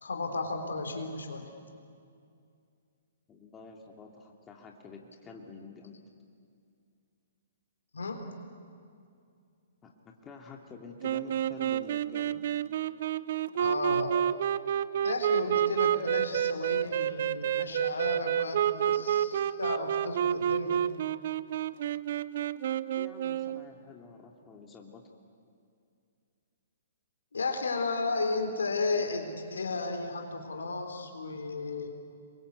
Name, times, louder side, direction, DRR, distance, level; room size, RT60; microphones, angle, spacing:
voice 1, 0.0-1.5 7.9-8.2 13.5-14.2 15.0-20.8 27.3-31.9, left 3 dB, 80° left, 4 dB, 3.7 m, -34 dB
voice 2, 3.3-6.0 9.8-12.4 22.7-25.0, left 4 dB, 20° left, 1 dB, 2.8 m, -48 dB
sound 1, 11.0-23.7, right 10 dB, 55° right, 0.7 m, -29 dB
27.0 x 23.0 x 8.3 m, 2.4 s
hypercardioid pair, 125°, 0 cm